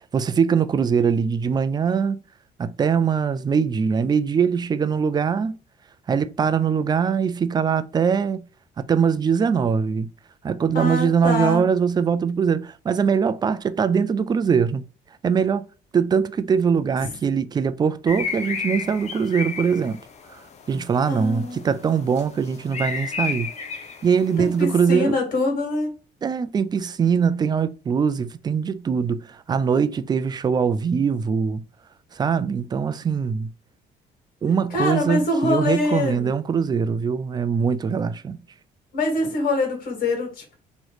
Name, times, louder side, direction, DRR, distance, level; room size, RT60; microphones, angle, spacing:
voice 1, 0.1-2.2 2.6-5.6 6.1-8.4 8.8-10.1 10.4-14.9 15.2-15.6 15.9-20.0 20.3-20.4 20.7-23.5 24.0-25.2 26.2-31.6 32.1-33.5 34.4-38.4, right 6 dB, 25° right, 0.3 m, -22 dB
voice 2, 10.7-11.6 21.1-21.6 24.4-25.9 34.7-36.3 38.9-40.6, left 2 dB, 55° left, 2.0 m, -24 dB
sound 1, 18.1-25.0, left 5 dB, 40° left, 0.7 m, -33 dB
3.1 x 3.0 x 3.9 m
cardioid pair, 110°, 17 cm